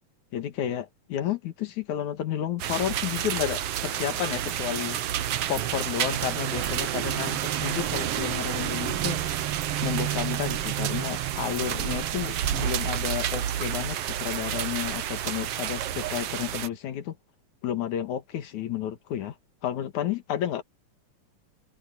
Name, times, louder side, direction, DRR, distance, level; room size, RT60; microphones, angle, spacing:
voice 1, 0.3-5.0 5.5-9.2 9.8-17.2 17.6-19.3 19.6-20.6, left 10 dB, 65° left, 3.0 m, -31 dB
sound 1, 2.6-16.7, right 11 dB, 65° right, 1.5 m, -29 dB
omnidirectional pair, 3.8 m